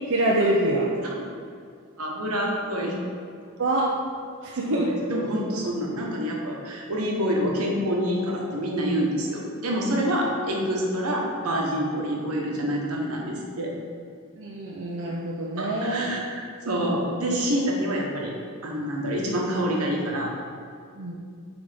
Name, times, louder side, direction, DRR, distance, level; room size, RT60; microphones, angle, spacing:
voice 1, 0.1-0.9 3.6-4.0 4.4-4.9 14.4-16.2 20.9-21.2, right 1 dB, 60° right, -4 dB, 0.8 m, -25 dB
voice 2, 2.0-3.0 4.6-13.7 15.6-18.3 18.6-20.3, equal, 80° right, -2 dB, 1.3 m, -27 dB
7.8 x 3.6 x 5.2 m, 2.2 s
head